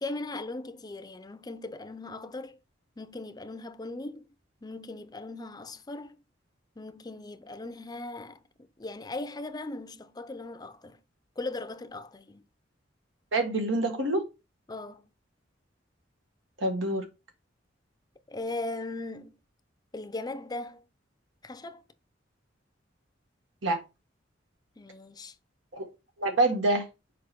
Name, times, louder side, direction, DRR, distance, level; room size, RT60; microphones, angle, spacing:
voice 1, 0.0-2.6 3.0-4.2 4.6-6.2 6.8-8.4 8.8-11.0 11.4-12.5 14.7-15.0 18.3-19.3 19.9-20.8 21.4-21.8 24.8-25.4, left 2 dB, 20° left, 0.5 m, -38 dB
voice 2, 13.3-14.2 16.6-17.0 23.6-23.8 25.8-25.9 26.2-26.8, right 2 dB, 85° right, 1.6 m, -26 dB
6.7 x 4.8 x 3.5 m
head